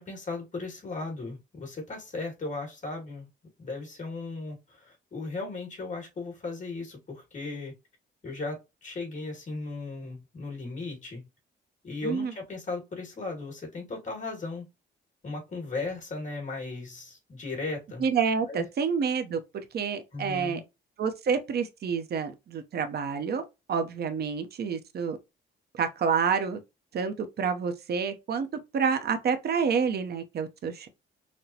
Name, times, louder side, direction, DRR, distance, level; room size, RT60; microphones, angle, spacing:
voice 1, 0.0-3.3 3.6-7.7 8.2-11.3 11.8-14.7 15.2-18.0 18.5-18.6 20.1-20.6, left 3 dB, 40° left, 2.3 m, -36 dB
voice 2, 12.0-12.3 18.0-20.6 21.0-25.2 25.7-26.6 26.9-28.5 28.7-30.9, right 6 dB, 55° right, 0.8 m, -28 dB
5.9 x 2.2 x 2.8 m
cardioid pair, 90°, 20 cm